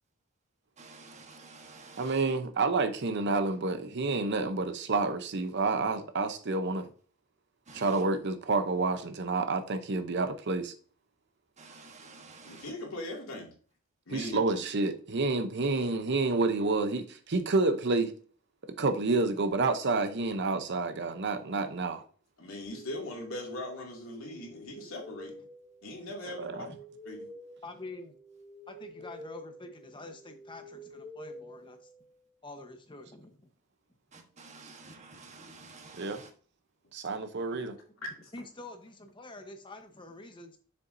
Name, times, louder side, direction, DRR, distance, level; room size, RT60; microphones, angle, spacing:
voice 1, 0.8-2.2 7.7-8.0 11.6-12.7 34.1-36.3, right 3 dB, 35° right, 1.2 m, -50 dB
voice 2, 2.0-6.9 7.7-10.7 14.1-18.1 18.8-22.0 26.4-26.7 36.0-36.2 36.9-37.8, right 3 dB, 55° right, 0.7 m, -29 dB
voice 3, 12.4-13.5 14.1-14.4 22.4-25.3 25.8-26.7 27.1-27.3 38.0-38.1, left 1 dB, 75° left, 2.3 m, -40 dB
sound 1, 22.7-32.3, left 1 dB, ahead, 2.7 m, -49 dB
voice 4, 27.6-28.1 28.7-31.8 32.4-33.4 37.5-37.6 38.3-40.6, left 2 dB, 25° left, 1.0 m, -46 dB
6.9 x 6.8 x 2.6 m
head